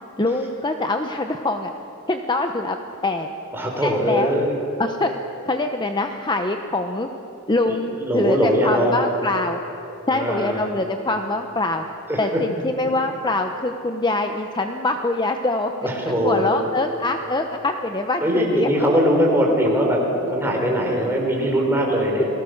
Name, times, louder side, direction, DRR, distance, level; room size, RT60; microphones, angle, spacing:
voice 1, 0.2-1.7 2.1-2.8 3.0-3.3 3.8-4.3 4.8-5.1 5.5-7.1 7.5-9.6 10.1-11.8 12.2-15.9 16.2-18.7, left 2 dB, 20° left, 5 dB, 0.8 m, -24 dB
voice 2, 3.5-4.6 7.6-9.0 10.1-10.7 12.1-12.4 15.8-16.5 18.2-22.3, equal, 10° right, -1 dB, 4.2 m, -21 dB
28.5 x 19.5 x 6.5 m, 3.0 s
head